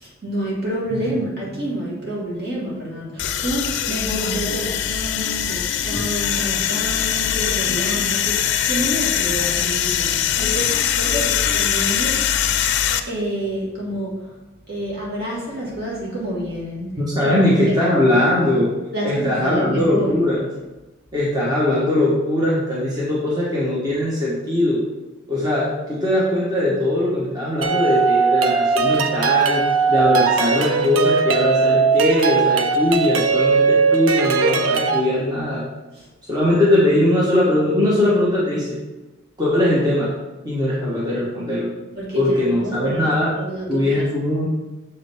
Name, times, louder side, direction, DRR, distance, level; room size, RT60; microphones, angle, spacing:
voice 1, 0.0-12.6 13.1-14.1 14.7-16.9 17.2-17.3 17.7-17.8 18.9-20.1 36.0-36.1 42.0-44.0, right 1 dB, 55° right, -5 dB, 2.2 m, -28 dB
voice 2, 0.9-1.2 17.0-18.7 19.0-20.5 21.1-24.8 25.3-29.6 29.9-35.6 36.3-38.7 39.4-40.1 40.4-41.7 42.1-43.3 43.7-44.5, left 1 dB, 20° right, -7 dB, 1.2 m, -20 dB
sound 1, 3.2-13.0, left 9 dB, 60° left, 0.4 m, -22 dB
sound 2, 27.6-35.0, right 5 dB, 85° right, 0.6 m, -18 dB
6.6 x 5.0 x 3.6 m, 1.1 s
head